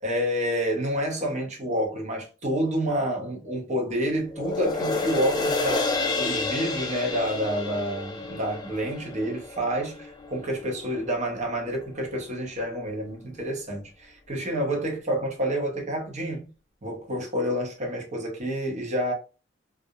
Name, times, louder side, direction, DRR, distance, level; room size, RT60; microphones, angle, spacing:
voice 1, 0.0-16.5 16.8-19.1, equal, 40° right, 0.8 m, -28 dB
sound 1, 4.3-10.9 11.3-11.4, left 3 dB, 20° left, 0.3 m, -30 dB
2.4 x 2.0 x 2.7 m
head